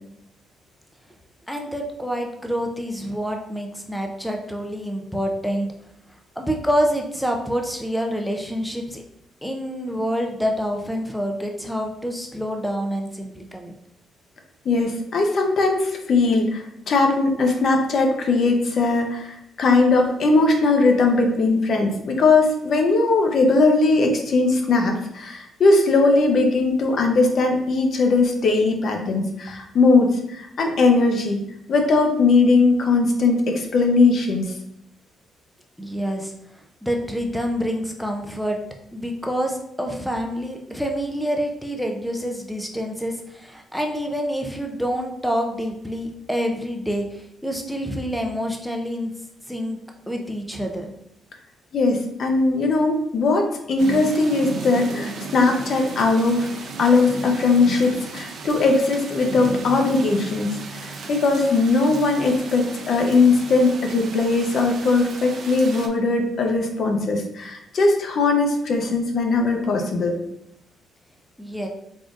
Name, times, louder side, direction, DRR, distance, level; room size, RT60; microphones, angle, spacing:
voice 1, 1.5-5.7 6.4-9.0 9.4-13.7 35.8-36.3 36.8-38.6 38.9-49.1 49.5-49.8 50.1-50.9 71.4-71.7, equal, ahead, 2 dB, 0.5 m, -27 dB
voice 2, 14.6-31.4 31.7-34.5 51.7-56.5 56.8-70.2, left 3 dB, 55° left, 2 dB, 0.7 m, -19 dB
sound 1, 53.8-65.9, right 4 dB, 60° right, 0.5 m, -35 dB
3.7 x 3.6 x 2.5 m, 0.76 s
cardioid pair, 90°, 0 cm